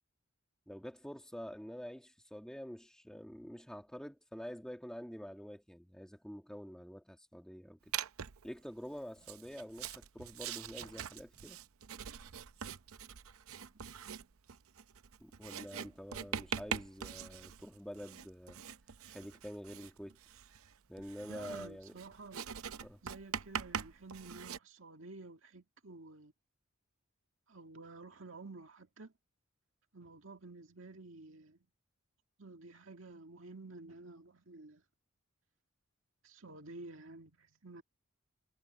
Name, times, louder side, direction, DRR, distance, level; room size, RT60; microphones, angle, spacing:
voice 1, 0.7-7.8 8.4-11.6 15.2-18.6 19.1-20.2 20.9-21.9 22.8-23.0, equal, 5° left, 2.0 m, -47 dB
Writing, 7.9-8.5 9.2-24.6, right 8 dB, 85° right, 0.7 m, -43 dB
voice 2, 21.3-22.4 23.0-26.3 27.5-29.1 29.9-31.6 32.4-34.8 36.2-37.8, right 3 dB, 65° right, 2.1 m, -51 dB
head